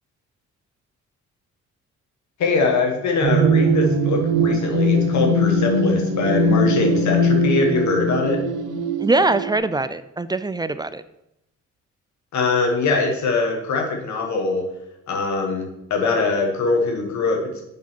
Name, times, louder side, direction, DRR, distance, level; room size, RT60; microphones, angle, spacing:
voice 1, 2.4-8.4 12.3-14.7 15.1-17.5, left 3 dB, 70° left, 2 dB, 1.9 m, -22 dB
sound 1, 3.2-9.6, right 1 dB, 85° right, 0.9 m, -20 dB
voice 2, 9.0-11.0, right 2 dB, 15° right, 13 dB, 0.3 m, -22 dB
7.3 x 4.0 x 6.1 m, 0.84 s
cardioid pair, 90°, 30 cm